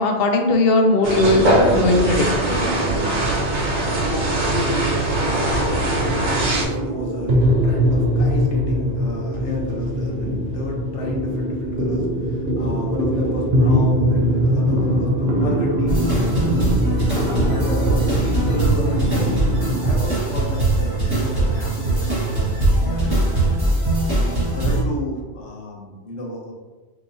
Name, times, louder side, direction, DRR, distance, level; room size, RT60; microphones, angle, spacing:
voice 1, 0.0-2.3, left 2 dB, 60° left, 3 dB, 0.8 m, -18 dB
sound 1, 1.0-6.6, right 1 dB, 80° right, 1.2 m, -21 dB
sound 2, 3.1-20.0, equal, 65° right, 1.0 m, -22 dB
voice 2, 3.8-23.5 24.1-26.5, equal, 85° left, -2 dB, 1.2 m, -31 dB
sound 3, 15.9-24.8, right 2 dB, 20° right, 1.5 m, -21 dB
4.6 x 2.9 x 2.6 m, 1.3 s
omnidirectional pair, 1.2 m